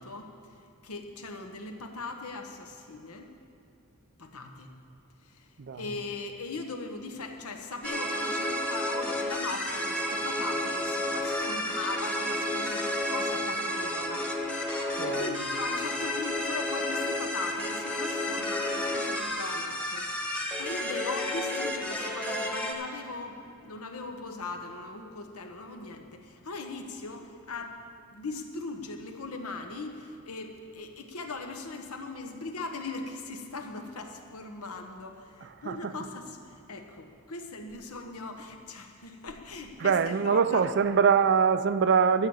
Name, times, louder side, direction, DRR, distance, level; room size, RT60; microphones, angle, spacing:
voice 1, 0.0-3.3 4.2-4.7 5.2-14.3 14.6-27.8 28.1-40.7, left 3 dB, 80° left, 4 dB, 1.2 m, -39 dB
sound 1, 7.8-22.7, left 1 dB, 5° left, 1.1 m, -31 dB
voice 2, 15.0-15.3 35.7-35.9 39.8-42.3, right 6 dB, 50° right, 12 dB, 0.4 m, -24 dB
13.0 x 7.6 x 7.2 m, 2.5 s
head